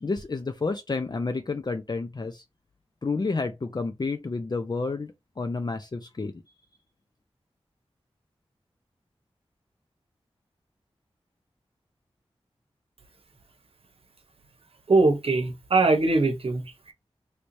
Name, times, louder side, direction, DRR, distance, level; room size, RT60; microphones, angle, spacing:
voice 1, 0.0-2.4 3.0-6.4, left 3 dB, 40° left, 0.5 m, -30 dB
voice 2, 14.9-16.6, right 3 dB, 60° right, 0.9 m, -21 dB
3.2 x 3.0 x 2.6 m
cardioid pair, 40°, 11 cm